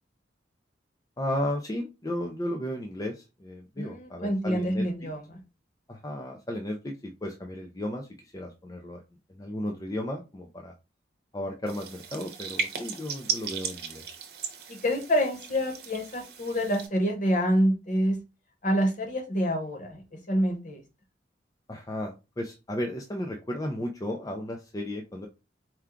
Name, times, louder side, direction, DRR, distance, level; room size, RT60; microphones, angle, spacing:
voice 1, 1.2-4.8 5.9-9.0 9.3-10.7 11.3-14.1 21.7-25.3, left 1 dB, 20° left, 1 dB, 0.5 m, -34 dB
voice 2, 3.8-5.2 14.7-18.2 18.6-20.8, equal, 45° left, 2 dB, 1.1 m, -27 dB
sound 1, 11.7-16.9, right 5 dB, 60° right, 0.8 m, -36 dB
4.5 x 2.3 x 3.6 m, 0.28 s
head